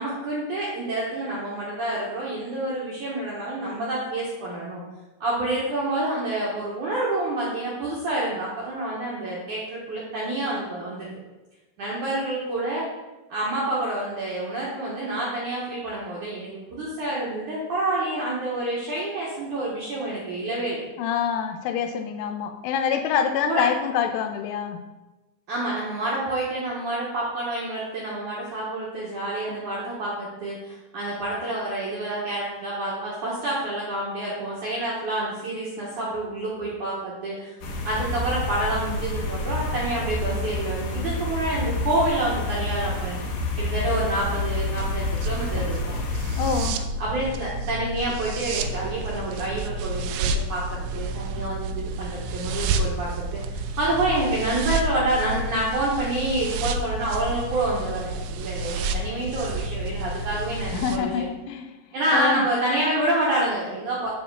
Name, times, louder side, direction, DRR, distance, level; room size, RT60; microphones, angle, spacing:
voice 1, 0.0-4.8 5.2-11.1 11.8-12.9 13.3-20.8 23.4-23.7 25.5-37.6 37.8-43.2 43.6-45.8 47.0-61.2 61.9-64.1, right 1 dB, 65° right, -6 dB, 2.0 m, -28 dB
voice 2, 21.0-24.8 46.3-46.9 60.7-61.7 62.1-62.4, left 8 dB, 85° left, 7 dB, 3.1 m, -26 dB
sound 1, 37.6-46.7, left 2 dB, 65° left, 3.3 m, -28 dB
sound 2, 44.8-61.0, right 2 dB, 85° right, 3.2 m, -30 dB
9.9 x 4.3 x 6.8 m, 1.1 s
omnidirectional pair, 5.8 m